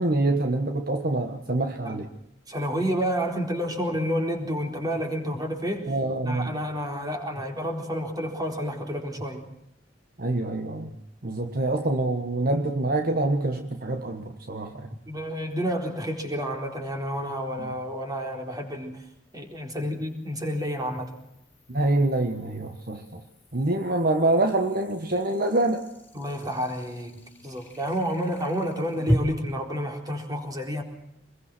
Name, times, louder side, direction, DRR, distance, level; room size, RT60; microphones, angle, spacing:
voice 1, 0.0-2.1 5.9-6.5 10.2-10.9 11.2-14.9 17.6-17.7 21.7-23.2 23.5-25.8, right 2 dB, 50° right, 6 dB, 1.5 m, -25 dB
voice 2, 2.5-5.9 6.2-9.4 15.1-19.0 19.3-21.2 26.1-30.8, equal, 20° right, 3 dB, 4.1 m, -30 dB
sound 1, 15.5-15.6 19.0-29.2, equal, 10° left, 4.0 m, -37 dB
25.5 x 21.5 x 6.2 m, 0.78 s
head